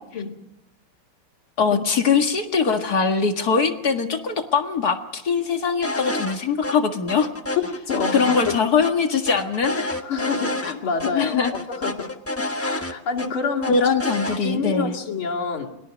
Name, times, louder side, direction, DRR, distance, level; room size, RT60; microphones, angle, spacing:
voice 1, 1.6-7.3 8.1-9.9 11.1-11.5 13.7-15.0, left 5 dB, 50° left, 5 dB, 2.2 m, -22 dB
sound 1, 5.8-6.4 6.6-6.7 7.1-8.9 9.3-10.7 11.0-11.1 11.4-13.3 13.6-14.4, left 1 dB, 10° left, 1.1 m, -28 dB
voice 2, 7.6-8.6 10.0-12.1 12.6-13.8 14.4-15.7, left 5 dB, 80° left, -1 dB, 3.3 m, -27 dB
29.5 x 21.5 x 5.2 m, 0.90 s
omnidirectional pair, 2.3 m